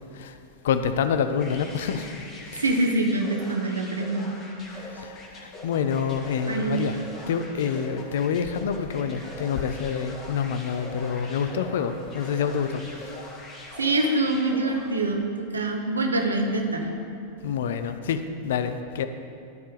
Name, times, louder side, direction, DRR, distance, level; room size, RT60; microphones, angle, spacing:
voice 1, 0.6-2.2 2.5-2.6 4.7-7.0 7.3-13.1 17.4-19.1, left 7 dB, 60° left, 9 dB, 0.6 m, -27 dB
sound 1, 1.4-15.2, left 1 dB, 30° left, 1.9 m, -42 dB
voice 2, 2.5-4.3 6.5-6.8 13.8-16.9, right 2 dB, 75° right, 3 dB, 1.1 m, -25 dB
12.0 x 4.5 x 6.8 m, 2.5 s
figure-of-eight pair, 90°, 0 cm